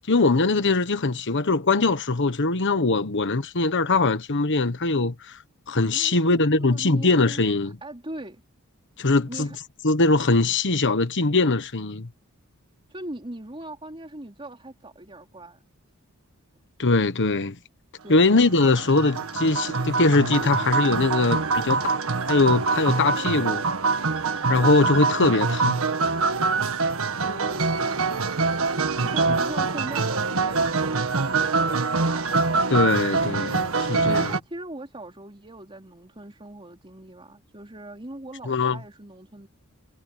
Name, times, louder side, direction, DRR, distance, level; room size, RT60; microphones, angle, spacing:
voice 1, 0.0-5.4 5.7-7.8 9.0-9.5 9.8-12.1 16.8-17.6 18.1-21.8 22.3-23.6 24.5-25.8 32.7-34.3 38.5-38.8, left 3 dB, 55° left, 1.3 m, -21 dB
voice 2, 5.9-8.4 9.3-9.6 12.9-15.6 18.0-18.4 27.2-28.2 29.0-31.9 33.5-39.5, right 1 dB, 25° right, 3.5 m, -40 dB
sound 1, 18.2-34.4, right 4 dB, 65° right, 1.7 m, -24 dB
head